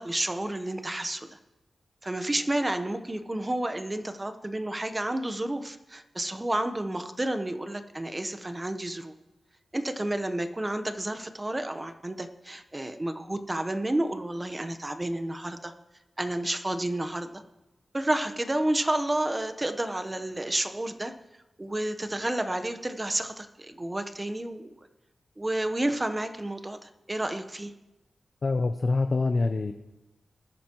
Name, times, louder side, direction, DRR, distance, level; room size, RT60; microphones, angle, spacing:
voice 1, 0.0-1.4 2.0-9.1 9.7-15.7 16.2-17.4 17.9-21.1 21.6-24.7 25.4-27.7, right 1 dB, 25° right, 8 dB, 1.0 m, -30 dB
voice 2, 28.4-29.7, left 3 dB, 55° left, 8 dB, 0.6 m, -25 dB
20.0 x 10.0 x 3.0 m, 1.0 s
cardioid pair, 65°, 0 cm